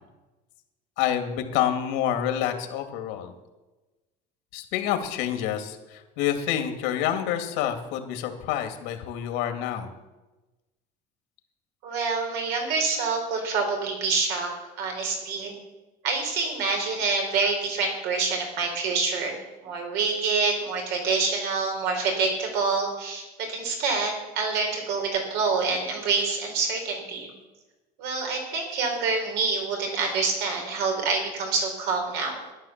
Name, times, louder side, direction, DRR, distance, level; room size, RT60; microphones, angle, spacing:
voice 1, 1.0-3.3 4.5-9.9, left 10 dB, 80° left, 6 dB, 2.4 m, -28 dB
voice 2, 11.8-14.5 14.8-15.6 16.0-19.3 19.6-27.3 28.0-32.4, right 4 dB, 65° right, 2 dB, 4.7 m, -26 dB
13.5 x 11.0 x 7.4 m, 1.1 s
cardioid pair, 165°, 18 cm